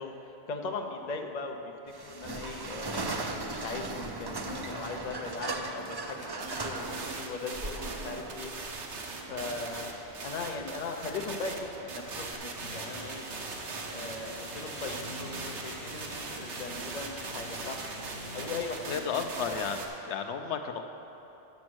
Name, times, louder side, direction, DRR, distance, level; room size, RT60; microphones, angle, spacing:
voice 1, 0.0-1.6 2.0-8.5 9.3-9.9 10.2-13.2 13.9-17.8 18.3-19.6, left 4 dB, 45° left, 3 dB, 0.7 m, -39 dB
sound 1, 1.9-12.3, right 2 dB, 40° right, 0.3 m, -38 dB
sound 2, 6.4-19.9, right 3 dB, 85° right, 1.2 m, -40 dB
sound 3, 12.5-18.8, right 1 dB, 65° right, 1.6 m, -44 dB
voice 2, 18.9-20.8, left 6 dB, 80° left, 6 dB, 1.0 m, -33 dB
9.5 x 6.3 x 6.1 m, 3.0 s
omnidirectional pair, 1.2 m